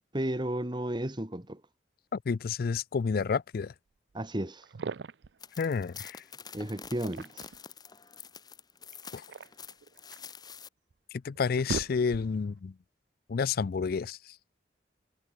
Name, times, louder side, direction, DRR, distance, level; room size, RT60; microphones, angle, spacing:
voice 1, 0.1-1.6 4.1-4.7 6.5-7.5, right 1 dB, 25° right, 2.0 m, -33 dB
voice 2, 2.1-3.7 5.6-6.2 9.1-9.2 11.1-12.7 13.3-14.4, left 5 dB, 55° left, 0.4 m, -30 dB
sound 1, 4.6-5.4 6.8-7.7 8.9-10.3 10.9-11.0 11.3-12.5, right 4 dB, 70° right, 0.5 m, -39 dB
sound 2, 5.4-10.7, left 6 dB, 20° left, 0.9 m, -47 dB
head